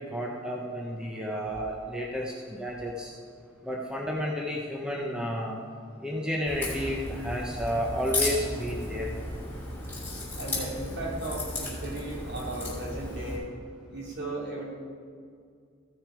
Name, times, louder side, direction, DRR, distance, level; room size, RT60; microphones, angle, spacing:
voice 1, 0.0-3.1 3.6-5.6 6.0-9.1, equal, 5° right, -2 dB, 0.8 m, -31 dB
Crack, 6.5-13.4, left 2 dB, 10° left, 3.0 m, -34 dB
voice 2, 10.3-13.5 13.9-14.6, right 2 dB, 55° right, -3 dB, 2.5 m, -36 dB
15.0 x 6.2 x 4.9 m, 2.2 s
head